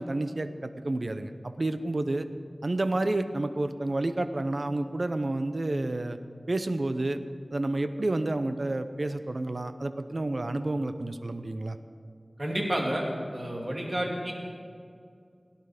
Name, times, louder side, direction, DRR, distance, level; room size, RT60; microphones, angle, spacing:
voice 1, 0.0-2.3 2.6-6.2 6.5-7.2 7.5-11.8, right 2 dB, 60° right, 10 dB, 0.7 m, -30 dB
voice 2, 12.4-13.1 13.3-14.3, right 1 dB, 40° right, -1 dB, 2.8 m, -30 dB
17.5 x 10.5 x 5.1 m, 2.3 s
wide cardioid pair, 50°, 0 cm